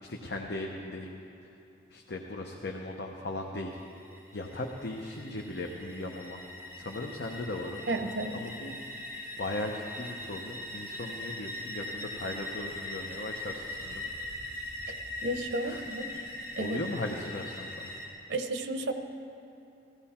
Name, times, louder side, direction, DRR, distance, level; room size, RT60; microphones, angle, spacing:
voice 1, 0.0-1.1 1.9-3.7 4.3-6.4 6.7-7.8 8.3-8.7 9.4-14.0 15.6-15.8 16.6-17.9, left 2 dB, 60° left, 1 dB, 0.8 m, -37 dB
sound 1, 3.7-18.1, left 1 dB, 15° right, 2.2 m, -41 dB
voice 2, 7.9-8.4 14.9-15.0 15.2-16.2 16.6-16.8 18.3-18.9, right 2 dB, 85° right, 7 dB, 0.9 m, -32 dB
16.0 x 14.5 x 4.3 m, 2.7 s
head